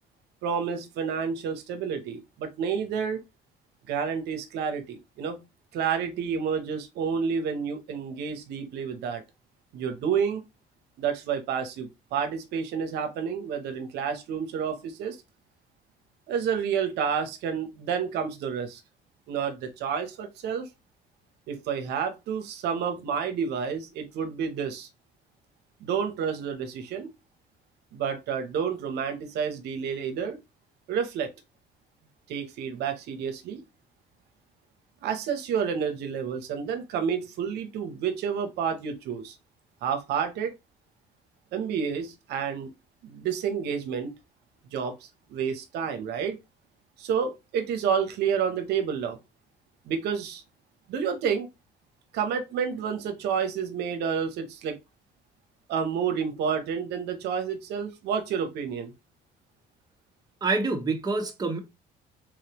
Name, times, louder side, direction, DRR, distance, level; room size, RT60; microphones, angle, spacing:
voice 1, 0.4-3.2 3.9-5.4 5.7-9.2 9.7-10.4 11.0-15.2 16.3-18.8 19.3-20.7 21.5-24.9 25.8-27.1 27.9-30.4 30.9-31.3 32.3-33.6 35.0-39.3 39.8-40.5 41.5-42.7 43.0-44.1 44.7-46.4 47.0-49.2 49.9-50.4 50.9-51.5 52.1-54.8 55.7-58.9, right 7 dB, 75° right, 0.8 m, -29 dB
voice 2, 60.4-61.6, right 3 dB, 25° right, 1.0 m, -26 dB
3.6 x 3.3 x 2.9 m
cardioid pair, 110°, 17 cm